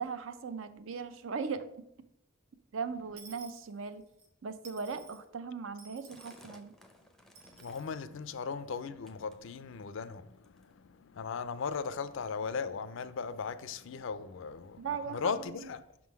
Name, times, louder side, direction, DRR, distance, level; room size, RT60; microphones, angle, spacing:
voice 1, 0.0-1.7 2.7-4.0 4.4-6.7 14.8-15.3, right 5 dB, 60° right, 0.5 m, -38 dB
Dishes pots and pans / Coin (dropping), 3.2-4.3 4.6-5.2 5.8-6.5 7.3-7.9, right 4 dB, 90° right, 1.2 m, -54 dB
sound 1, 6.1-8.0 8.4-8.8 9.1-9.9 10.4-10.8 11.5-11.6 11.8-12.0 12.6-12.7 13.4-13.5, left 1 dB, ahead, 0.5 m, -58 dB
voice 2, 7.5-15.8, left 5 dB, 60° left, 0.4 m, -38 dB
6.0 x 3.7 x 5.9 m
head